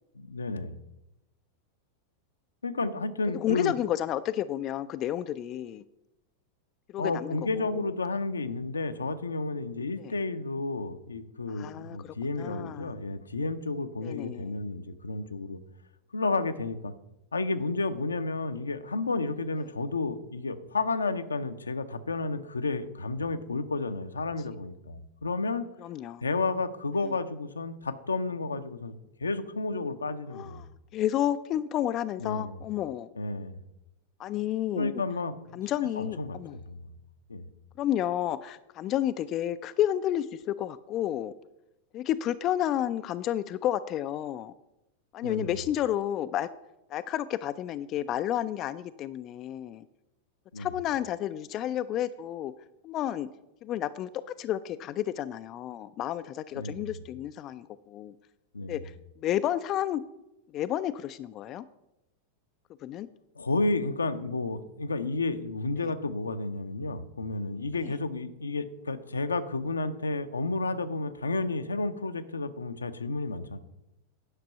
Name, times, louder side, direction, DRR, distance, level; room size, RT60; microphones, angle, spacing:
voice 1, 0.1-0.8 2.6-3.7 7.0-15.6 16.1-16.9 17.3-25.7 26.2-28.9 29.2-30.6 32.2-32.6 33.2-33.5 34.7-35.6 36.0-36.9 37.3-37.4 45.2-45.5 50.5-50.7 56.5-56.9 58.5-58.8 63.4-73.6, left 3 dB, 75° left, 10 dB, 0.6 m, -31 dB
voice 2, 3.4-5.8 6.9-7.8 10.0-10.1 11.5-12.9 14.0-14.5 25.8-26.2 30.3-30.7 30.9-33.1 34.2-35.0 35.5-36.6 37.8-41.3 41.9-44.5 45.1-46.5 46.9-49.8 50.6-52.5 52.8-53.3 53.6-58.1 58.7-60.0 60.5-61.6 62.8-63.1 65.8-65.9 67.8-68.0, left 11 dB, 35° left, 12 dB, 0.3 m, -31 dB
9.9 x 5.9 x 5.5 m, 0.91 s
figure-of-eight pair, 90°, 0 cm